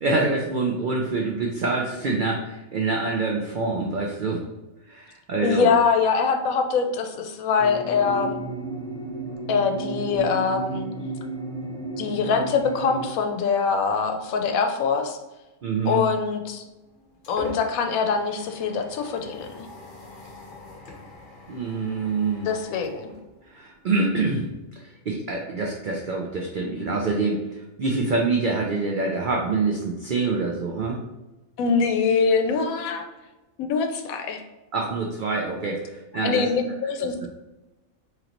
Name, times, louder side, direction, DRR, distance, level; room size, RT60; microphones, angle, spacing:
voice 1, 0.0-4.4 4.9-5.7 15.6-16.0 21.5-22.5 23.5-27.4 27.8-31.0 34.7-36.4, right 3 dB, 80° right, 0 dB, 0.4 m, -26 dB
voice 2, 5.4-8.4 9.5-10.9 12.0-15.2 15.8-16.6 17.3-19.7 22.4-23.1 31.6-33.1 33.6-34.4 36.1-37.3, left 5 dB, 80° left, 6 dB, 1.0 m, -23 dB
sound 1, 7.6-13.1, right 2 dB, 20° left, 0.5 m, -33 dB
sound 2, 16.5-23.9, left 3 dB, 45° left, 0.8 m, -42 dB
3.8 x 3.1 x 2.9 m, 1.0 s
omnidirectional pair, 1.4 m